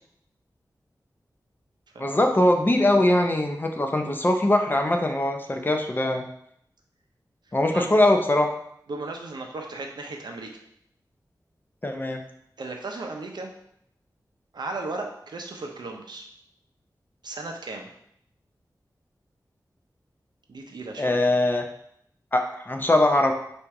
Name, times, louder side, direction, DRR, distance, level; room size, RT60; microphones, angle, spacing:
voice 1, 2.0-6.3 7.5-8.5 11.8-12.2 21.0-21.7 22.3-23.3, left 1 dB, 25° left, 4 dB, 0.5 m, -21 dB
voice 2, 8.9-10.5 12.6-13.5 14.5-16.2 17.2-17.9 20.5-21.2, right 3 dB, 90° right, 2 dB, 0.6 m, -35 dB
4.3 x 2.6 x 4.6 m, 0.71 s
wide cardioid pair, 85°, 7 cm